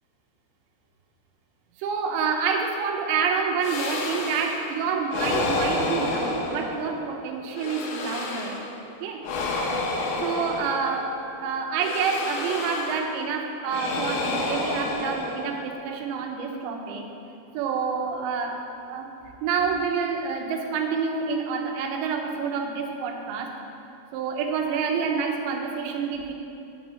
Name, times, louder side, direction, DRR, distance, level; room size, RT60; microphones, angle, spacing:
voice 1, 1.8-8.6 8.9-9.2 9.5-9.8 10.2-17.1 17.5-19.1 19.4-23.5 24.1-26.3, right 5 dB, 90° right, 3 dB, 3.1 m, -28 dB
sound 1, 3.6-4.7 5.1-7.1 7.5-8.8 9.2-11.2 11.8-13.2 13.7-15.8, left 2 dB, 85° left, 3.1 m, -30 dB
7.3 x 5.6 x 7.5 m, 2.7 s
omnidirectional pair, 5.0 m